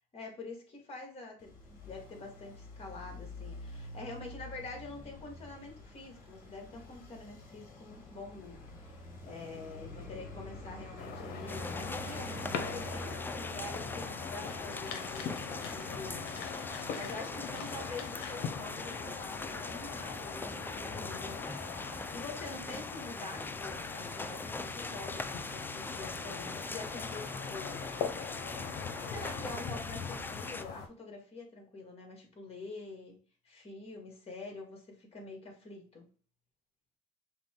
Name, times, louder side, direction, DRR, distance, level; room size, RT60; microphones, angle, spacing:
voice 1, 0.1-16.3 16.7-21.8 22.1-27.8 29.1-33.2 33.4-36.1, left 3 dB, 35° left, 1.8 m, -46 dB
Traffic noise roadway noise, 1.4-16.9, left 1 dB, 50° left, 1.5 m, -47 dB
sound 1, 11.0-30.9, left 7 dB, 75° left, 0.7 m, -42 dB
sound 2, 11.5-30.6, left 3 dB, 10° left, 0.3 m, -41 dB
5.7 x 2.3 x 3.6 m
cardioid pair, 110°, 17 cm